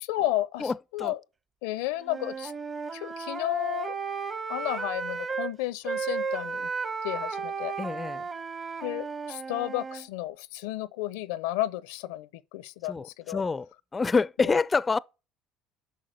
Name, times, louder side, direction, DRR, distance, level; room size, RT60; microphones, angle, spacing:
voice 1, 0.0-1.2 1.6-2.5 2.9-4.0 4.5-6.7 7.0-7.7 8.8-13.4 14.4-14.6, left 15 dB, 75° left, 0.5 m, -32 dB
voice 2, 0.6-1.1 7.8-8.2 12.9-15.0, left 4 dB, 25° left, 0.4 m, -27 dB
Wind instrument woodwind instrument, 2.0-5.5 5.8-10.1, right 5 dB, 30° right, 1.2 m, -34 dB
8.4 x 6.2 x 7.9 m
hypercardioid pair, 65°, 0 cm